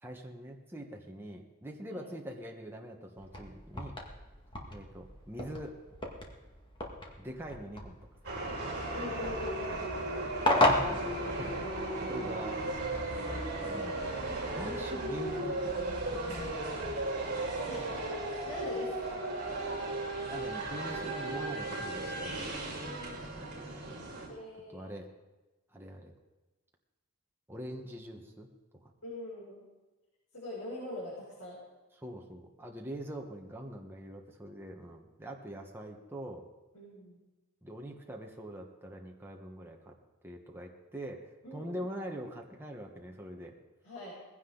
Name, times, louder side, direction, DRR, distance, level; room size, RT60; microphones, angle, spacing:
voice 1, 0.0-4.0 4.6-5.8 7.2-8.0 9.9-11.6 12.1-12.8 13.7-14.0 14.5-16.4 20.3-22.9 24.7-25.1 25.7-26.1 27.5-28.5 28.8-28.9 32.0-36.5 37.6-39.9 40.2-43.5, right 1 dB, 10° right, 0 dB, 1.2 m, -44 dB
sound 1, 3.2-11.9, left 1 dB, 20° left, 1.9 m, -34 dB
sound 2, 8.2-24.3, right 2 dB, 45° right, 5.6 m, -36 dB
voice 2, 8.9-9.9 13.8-14.1 17.6-19.3 20.9-21.6 22.8-23.3 24.3-24.9 29.0-29.6 30.3-31.6 36.7-37.2 41.4-41.9 43.8-44.1, left 1 dB, 70° left, -8 dB, 6.5 m, -43 dB
20.0 x 16.0 x 3.9 m, 1.1 s
head